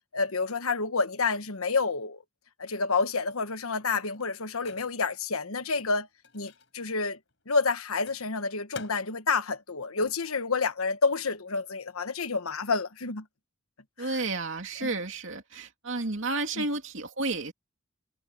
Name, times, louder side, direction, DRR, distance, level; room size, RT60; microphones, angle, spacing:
voice 1, 0.1-2.2 2.6-6.1 6.3-7.2 7.5-13.2 14.0-14.1 14.8-14.9 16.6-16.7, left 4 dB, 80° left, 1.2 m, -29 dB
Microwave oven, 3.8-10.9 11.2-13.1, left 5 dB, 55° left, 6.6 m, -53 dB
voice 2, 14.0-17.5, right 3 dB, 60° right, 2.8 m, -31 dB
head